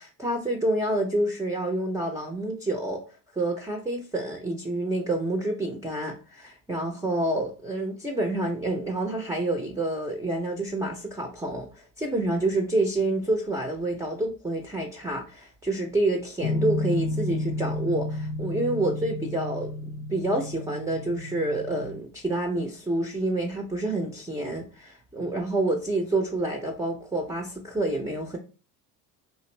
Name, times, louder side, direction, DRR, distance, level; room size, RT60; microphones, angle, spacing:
voice 1, 0.0-3.0 3.4-19.7 20.1-28.4, right 1 dB, 5° right, 2 dB, 0.5 m, -28 dB
sound 1, 16.4-22.0, left 2 dB, 65° left, 0.6 m, -31 dB
2.9 x 2.5 x 3.2 m, 0.34 s
supercardioid pair, 75°, 44 cm